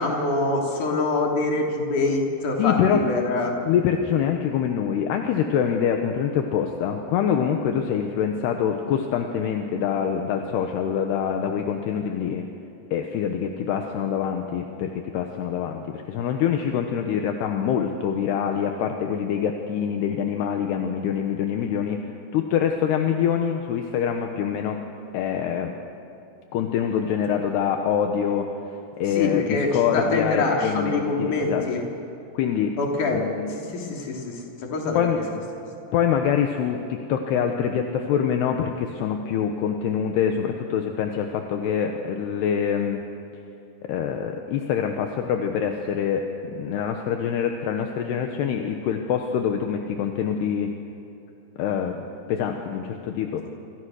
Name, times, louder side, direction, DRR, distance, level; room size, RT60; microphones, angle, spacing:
voice 1, 0.0-2.8 3.1-3.5 29.1-31.8 32.8-33.2 33.5-34.4 34.7-35.2, left 3 dB, 45° left, 0 dB, 4.4 m, -25 dB
voice 2, 2.6-3.0 3.7-12.5 12.9-22.0 22.3-24.8 25.1-25.8 26.5-28.5 29.0-31.6 32.3-32.7 33.1-33.5 34.9-35.2 35.9-43.0 43.8-46.2 46.5-50.7 51.6-52.0 52.3-53.4, left 8 dB, 75° left, 4 dB, 3.1 m, -25 dB
27.5 x 25.5 x 6.4 m, 2.8 s
omnidirectional pair, 5.1 m